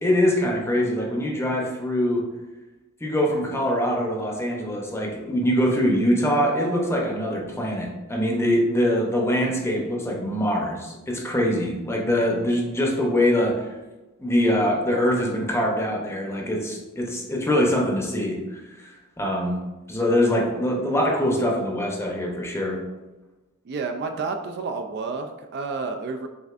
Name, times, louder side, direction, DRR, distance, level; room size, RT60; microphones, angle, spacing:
voice 1, 0.0-2.2 3.0-13.7 14.2-18.9 19.2-19.6 19.9-22.8, equal, 10° left, -1 dB, 0.7 m, -23 dB
voice 2, 23.7-26.3, right 4 dB, 50° right, 5 dB, 0.3 m, -30 dB
6.6 x 2.5 x 2.4 m, 1.1 s
head